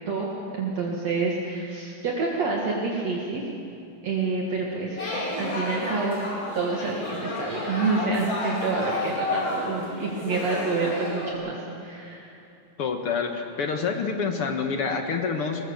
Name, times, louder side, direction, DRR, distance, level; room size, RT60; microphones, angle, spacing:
voice 1, 0.0-3.4 4.0-5.0 5.4-6.2 6.5-12.3, right 3 dB, 55° right, -2 dB, 2.8 m, -28 dB
sound 1, 5.0-11.3, left 2 dB, 35° left, 4.2 m, -31 dB
voice 2, 12.8-15.7, left 5 dB, 50° left, 5 dB, 1.9 m, -27 dB
21.5 x 20.5 x 7.2 m, 2.7 s
omnidirectional pair, 3.9 m